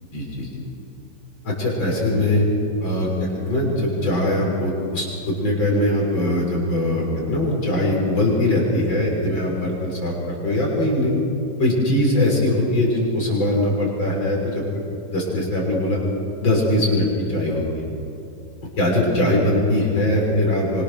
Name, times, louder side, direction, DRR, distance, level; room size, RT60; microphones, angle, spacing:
voice 1, 0.1-0.5 1.4-2.5 2.8-11.1 11.6-14.6 15.1-16.0 16.4-17.8 18.8-20.8, left 1 dB, 85° left, -2 dB, 6.8 m, -21 dB
26.0 x 25.5 x 6.9 m, 2.8 s
omnidirectional pair, 2.1 m